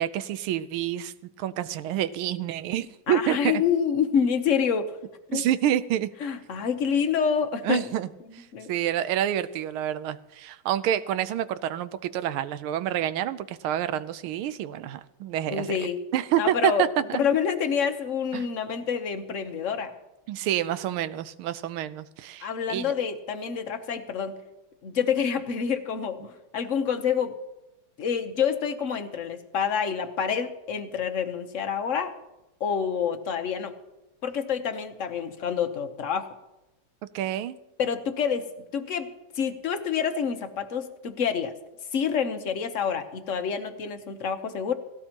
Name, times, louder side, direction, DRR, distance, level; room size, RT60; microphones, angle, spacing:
voice 1, 0.0-3.6 5.3-6.1 7.6-17.2 18.3-18.5 20.3-22.9 37.1-37.6, right 11 dB, 85° right, 13 dB, 1.5 m, -28 dB
voice 2, 3.1-4.9 5.3-5.4 6.2-7.8 8.5-8.7 15.5-16.0 16.4-16.8 17.2-19.9 22.4-24.3 24.8-27.4 28.0-32.1 32.6-33.7 34.2-36.3 37.8-38.5 38.7-39.1 39.4-41.5 41.9-44.7, left 7 dB, 50° left, 7 dB, 0.9 m, -27 dB
17.0 x 17.0 x 2.9 m, 0.98 s
omnidirectional pair, 2.3 m